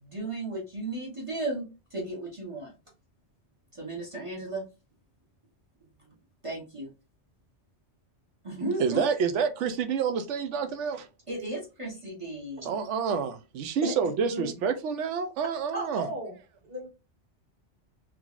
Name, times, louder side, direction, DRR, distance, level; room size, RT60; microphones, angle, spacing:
voice 1, 0.0-2.7 3.7-4.6 6.4-6.9 8.4-9.0 11.3-12.7, right 2 dB, 30° right, 0.9 m, -35 dB
voice 2, 8.8-11.1 12.6-16.1, right 6 dB, 85° right, 0.9 m, -28 dB
voice 3, 15.7-16.4 16.6-16.9, right 1 dB, 55° right, 1.8 m, -34 dB
3.8 x 3.0 x 2.4 m
omnidirectional pair, 1.2 m